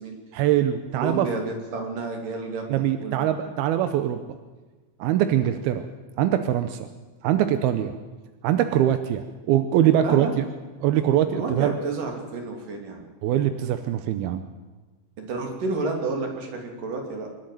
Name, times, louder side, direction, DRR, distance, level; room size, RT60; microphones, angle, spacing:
voice 1, 0.3-1.3 2.7-4.4 5.0-5.9 6.2-6.9 7.2-8.0 8.4-10.4 10.8-11.7 13.2-14.4, right 11 dB, 90° right, 9 dB, 2.8 m, -22 dB
voice 2, 0.9-3.4 10.0-10.3 11.3-13.1 15.2-17.3, right 3 dB, 65° right, 3 dB, 4.3 m, -30 dB
25.0 x 12.0 x 9.2 m, 1.3 s
omnidirectional pair, 4.3 m